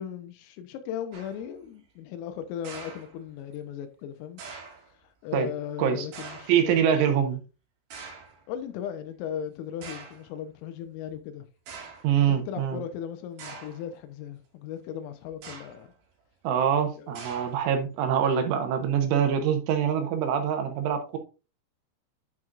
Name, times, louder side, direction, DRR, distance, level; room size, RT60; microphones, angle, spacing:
voice 1, 0.0-4.4 5.2-7.0 8.5-11.5 12.3-15.9 16.9-17.2, left 9 dB, 85° left, 3.6 m, -37 dB
sound 1, 1.1-1.5 2.6-3.5 4.4-4.9 6.1-6.7 7.9-8.4 9.3-9.4 9.8-10.3 11.1-11.2 11.7-12.2 13.4-13.9 15.3-15.9 17.2-17.8, right 5 dB, 55° right, 3.5 m, -44 dB
voice 2, 6.5-7.4 12.0-12.8 16.5-21.2, right 8 dB, 75° right, 3.5 m, -24 dB
10.5 x 6.2 x 2.5 m
omnidirectional pair, 5.8 m